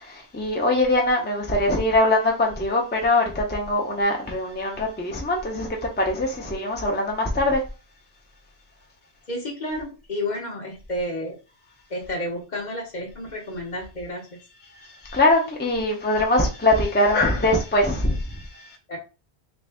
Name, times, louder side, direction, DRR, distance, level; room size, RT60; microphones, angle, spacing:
voice 1, 0.3-5.7 6.0-7.6 15.1-18.2, left 1 dB, 10° left, 0.6 m, -22 dB
voice 2, 9.3-11.4 11.9-14.3 18.9-19.0, left 1 dB, 45° left, 0.9 m, -31 dB
3.4 x 2.7 x 3.3 m
omnidirectional pair, 1.1 m